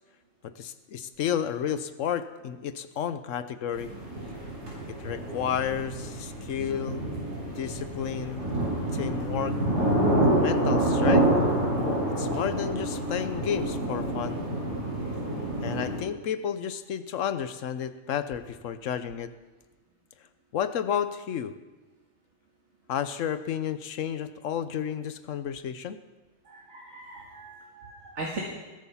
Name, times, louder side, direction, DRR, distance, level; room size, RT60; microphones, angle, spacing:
voice 1, 0.6-3.9 5.0-7.1 7.6-8.4 8.9-9.6 10.2-11.3 12.2-14.4 15.6-19.3 20.5-21.5 22.9-26.0, left 8 dB, 80° left, 12 dB, 1.1 m, -31 dB
sound 1, 3.7-16.0, right 1 dB, 85° right, 5.7 m, -27 dB
voice 2, 26.5-28.4, right 2 dB, 65° right, -2 dB, 2.1 m, -39 dB
20.5 x 8.6 x 5.7 m, 1.2 s
omnidirectional pair, 1.3 m